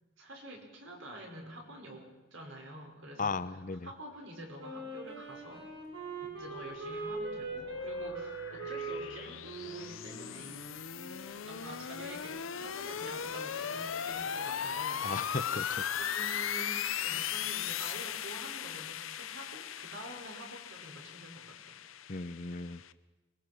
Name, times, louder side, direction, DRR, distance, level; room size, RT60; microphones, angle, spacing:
voice 1, 0.2-5.7 6.4-10.6 11.5-15.4 16.0-21.8, right 1 dB, 85° right, 1 dB, 5.6 m, -48 dB
voice 2, 3.2-3.9 15.0-15.8 22.1-22.8, left 4 dB, 40° left, 14 dB, 0.7 m, -36 dB
Wind instrument woodwind instrument, 4.6-11.3, right 2 dB, 65° right, 6.0 m, -41 dB
sound 1, 6.9-22.9, left 8 dB, 90° left, 0.7 m, -38 dB
24.0 x 20.5 x 6.2 m, 1.1 s
head